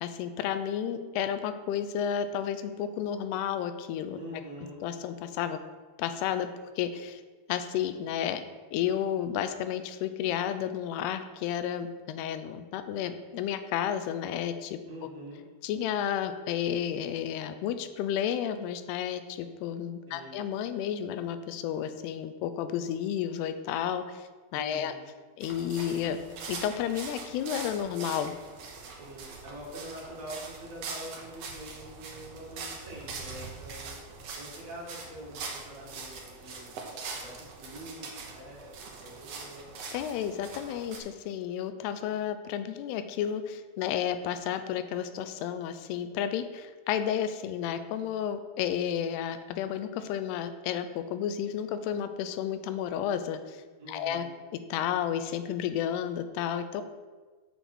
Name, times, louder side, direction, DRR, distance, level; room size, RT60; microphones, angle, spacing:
voice 1, 0.0-4.2 4.8-5.6 6.0-6.5 6.8-7.2 7.5-8.4 8.7-14.8 15.6-24.2 24.5-24.9 25.4-26.2 26.5-28.3 39.9-53.6 53.9-54.3 54.7-56.8, left 9 dB, 90° left, 10 dB, 2.7 m, -32 dB
voice 2, 4.1-4.9 14.9-15.4 20.0-20.4 24.5-25.1 29.0-34.0 34.3-36.7 37.1-38.6 39.0-39.9 53.8-54.4, equal, 30° right, -5 dB, 1.5 m, -45 dB
sound 1, 25.4-41.0, right 4 dB, 85° right, 1.4 m, -42 dB
6.9 x 6.1 x 6.0 m, 1.4 s
omnidirectional pair, 4.6 m